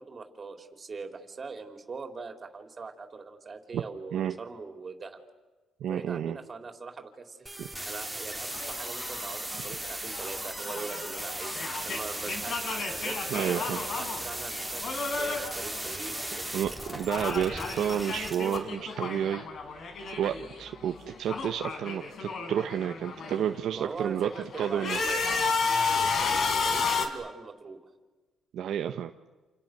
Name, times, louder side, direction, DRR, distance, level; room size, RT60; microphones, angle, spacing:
voice 1, 0.0-5.2 5.8-16.5 23.7-25.2 25.7-27.8, right 4 dB, 35° right, 5 dB, 4.1 m, -42 dB
voice 2, 5.8-6.4 7.6-7.7 13.3-13.8 16.5-19.5 20.2-24.3 24.6-25.0 28.5-29.1, right 9 dB, 75° right, 6 dB, 1.1 m, -30 dB
sound 1, 7.5-18.6, right 1 dB, 5° right, 3.6 m, -37 dB
sound 2, 8.5-16.6 16.8-20.6 20.8-23.5 24.0-27.1, left 4 dB, 60° left, 4.1 m, -33 dB
29.0 x 29.0 x 6.8 m, 1.2 s
cardioid pair, 90°, 0 cm